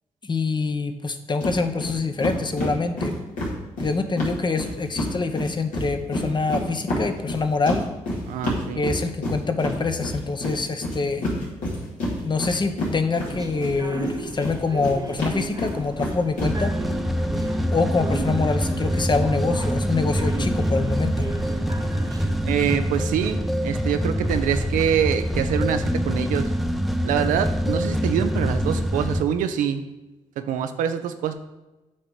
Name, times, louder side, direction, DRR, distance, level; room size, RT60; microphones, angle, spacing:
voice 1, 0.2-3.1 3.8-7.9 8.8-11.3 12.2-16.7 17.7-21.3, left 4 dB, 35° left, 8 dB, 0.8 m, -25 dB
sound 1, 1.4-1.6 1.8-1.9 2.2-5.1 5.4-13.7 14.0-16.5, left 1 dB, 80° left, 2.1 m, -28 dB
voice 2, 8.3-8.8 22.5-26.5 27.0-29.8 30.4-31.3, right 9 dB, 85° right, 8 dB, 0.5 m, -25 dB
sound 2, 13.3-22.3, right 3 dB, 30° right, 1.2 m, -36 dB
sound 3, 16.4-29.2, equal, ahead, 0.5 m, -25 dB
8.5 x 3.0 x 5.0 m, 1.1 s
supercardioid pair, 50°, 13 cm